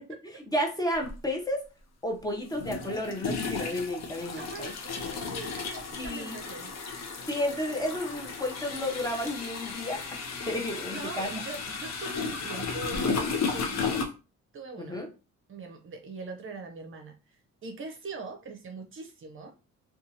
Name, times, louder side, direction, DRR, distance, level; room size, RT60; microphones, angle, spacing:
voice 1, 0.5-1.6 2.0-4.7 6.0-6.4 7.3-10.0 10.5-11.3 14.8-15.1, left 1 dB, 15° left, 1 dB, 0.7 m, -32 dB
sound 1, 1.0-1.1 2.5-14.0, left 4 dB, 60° left, 0.7 m, -34 dB
voice 2, 4.4-6.7 7.1-7.2 10.9-14.0 14.5-15.0 15.5-19.5, right 3 dB, 45° right, 5 dB, 0.6 m, -42 dB
2.7 x 2.3 x 2.7 m, 0.31 s
cardioid pair, 90°, 30 cm